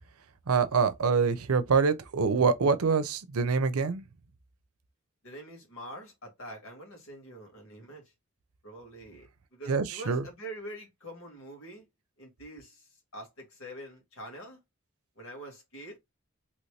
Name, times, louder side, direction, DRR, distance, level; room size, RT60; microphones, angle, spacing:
voice 1, 0.5-4.0 9.7-10.2, right 5 dB, 85° right, 0.6 m, -25 dB
voice 2, 5.2-8.0 8.6-11.9 12.2-14.6 15.1-16.0, right 1 dB, 70° left, 1.6 m, -45 dB
3.0 x 2.7 x 3.2 m
head